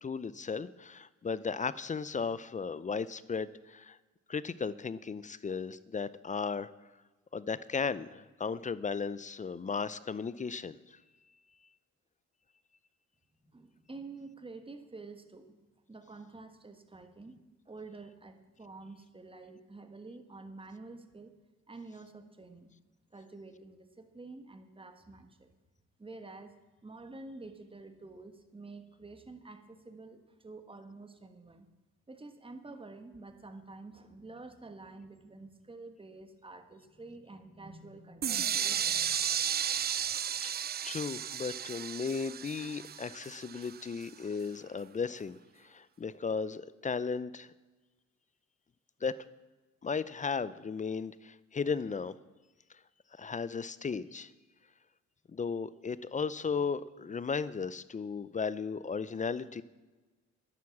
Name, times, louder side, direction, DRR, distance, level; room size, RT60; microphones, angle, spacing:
voice 1, 0.0-4.0 4.3-6.7 7.3-11.0 40.4-47.5 49.0-49.2 49.8-52.1 53.2-54.3 55.3-59.6, left 5 dB, 25° left, 17 dB, 0.5 m, -35 dB
voice 2, 13.5-15.5 15.9-17.4 17.6-21.3 21.7-22.7 23.1-25.5 26.0-26.5 26.8-31.7 32.1-39.6, right 3 dB, 15° right, 8 dB, 1.4 m, -49 dB
sound 1, 38.2-44.0, right 8 dB, 35° right, 0.4 m, -33 dB
11.0 x 9.5 x 7.2 m, 1.2 s
cardioid pair, 90°, 30 cm